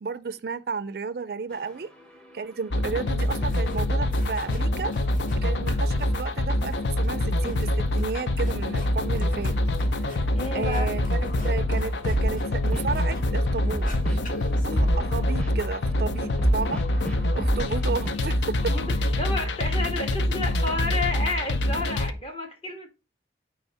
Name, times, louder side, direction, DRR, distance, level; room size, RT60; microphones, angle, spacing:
voice 1, 0.0-1.9 2.3-4.9 5.4-9.5 10.0-14.2 14.6-18.7, right 5 dB, 55° right, 0.4 m, -33 dB
sound 1, 1.5-18.1, right 1 dB, 5° left, 0.9 m, -35 dB
sound 2, 2.7-22.1, left 1 dB, 85° left, 0.6 m, -25 dB
sound 3, 3.2-3.8 4.1-5.4 5.7-13.4 13.7-15.0, left 1 dB, 50° left, 1.4 m, -44 dB
voice 2, 10.3-10.9 18.7-22.9, left 2 dB, 30° left, 1.4 m, -31 dB
9.1 x 3.2 x 4.2 m
head